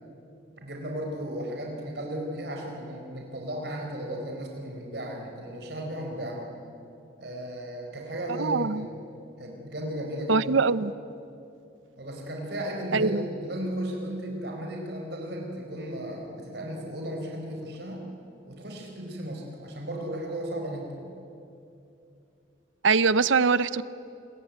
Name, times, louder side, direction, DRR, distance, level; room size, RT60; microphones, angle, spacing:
voice 1, 0.6-6.5 7.2-9.0 9.4-10.5 12.0-18.0 18.5-21.1, equal, 60° right, 1 dB, 4.3 m, -35 dB
voice 2, 8.4-8.9 10.3-10.9 12.9-13.2 22.8-23.8, right 4 dB, 90° right, 17 dB, 0.7 m, -23 dB
28.0 x 22.5 x 9.2 m, 2.7 s
head